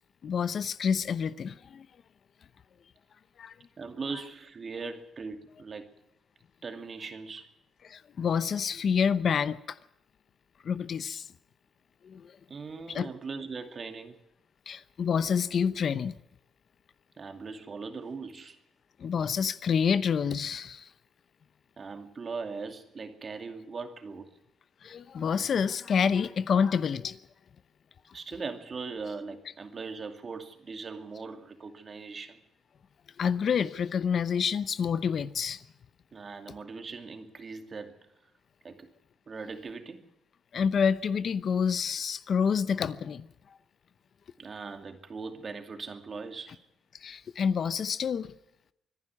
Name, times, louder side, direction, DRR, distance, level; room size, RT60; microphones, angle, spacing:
voice 1, 0.2-1.9 3.4-3.5 7.9-9.8 10.6-11.3 12.0-12.3 12.9-13.1 14.7-16.2 19.0-20.9 24.8-27.2 33.2-35.6 40.5-43.3 47.0-48.3, left 7 dB, 55° left, 0.8 m, -28 dB
voice 2, 3.8-5.9 6.6-7.5 12.5-14.2 17.2-18.6 21.8-24.3 28.1-32.4 36.1-38.0 38.6-38.9 39.3-40.1 44.4-46.6, right 4 dB, 40° right, 2.5 m, -40 dB
24.5 x 11.0 x 9.8 m
cardioid pair, 90°, 0 cm